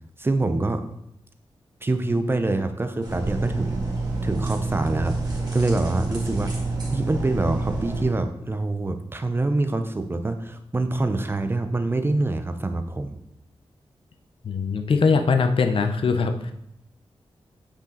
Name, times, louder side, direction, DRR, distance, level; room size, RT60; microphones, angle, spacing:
voice 1, 0.2-0.8 1.8-3.9 4.2-6.5 6.9-13.2, right 2 dB, 25° right, 8 dB, 0.5 m, -25 dB
sound 1, 3.0-8.0, right 3 dB, 45° right, 2.3 m, -28 dB
voice 2, 14.4-16.5, left 4 dB, 65° left, 7 dB, 0.7 m, -21 dB
8.7 x 5.1 x 3.9 m, 0.77 s
wide cardioid pair, 160°, 10 cm